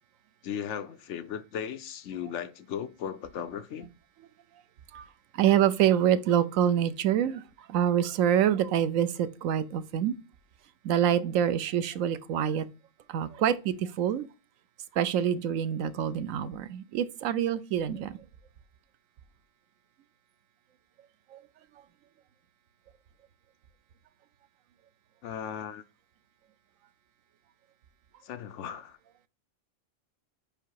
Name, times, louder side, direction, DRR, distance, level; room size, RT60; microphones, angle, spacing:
voice 1, 0.4-3.9 25.2-25.8 28.2-29.0, left 8 dB, 70° left, 0.9 m, -37 dB
voice 2, 5.4-7.4 7.7-10.2 10.8-12.6 13.1-14.3 15.0-18.2, right 9 dB, 85° right, 1.0 m, -26 dB
5.5 x 4.8 x 4.6 m
omnidirectional pair, 1.3 m